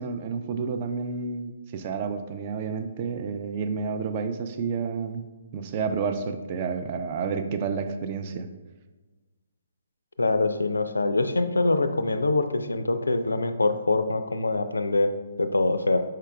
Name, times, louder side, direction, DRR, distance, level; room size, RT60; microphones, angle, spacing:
voice 1, 0.0-5.2 5.5-8.5, right 5 dB, 35° right, 8 dB, 0.3 m, -30 dB
voice 2, 10.2-15.1 15.4-16.0, left 2 dB, 75° left, 9 dB, 0.3 m, -24 dB
4.7 x 4.5 x 2.2 m, 1.3 s
figure-of-eight pair, 130°, 0 cm